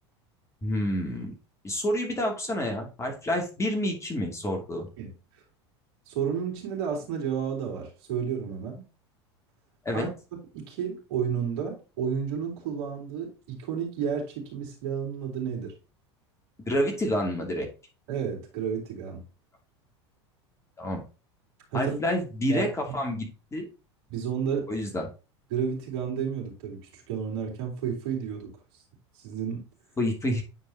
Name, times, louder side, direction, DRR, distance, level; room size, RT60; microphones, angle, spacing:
voice 1, 0.6-1.3 1.6-4.9 9.8-10.1 16.7-17.7 20.8-21.0 21.7-23.6 24.7-25.1 30.0-30.4, left 1 dB, 20° left, 2 dB, 2.6 m, -28 dB
voice 2, 6.1-8.9 9.9-10.1 10.5-15.7 18.1-19.2 21.7-22.0 22.5-22.7 24.1-24.7 25.5-28.5 29.1-29.6, right 7 dB, 65° right, 0 dB, 3.5 m, -31 dB
9.6 x 4.7 x 2.8 m, 0.31 s
hypercardioid pair, 85°, 15 cm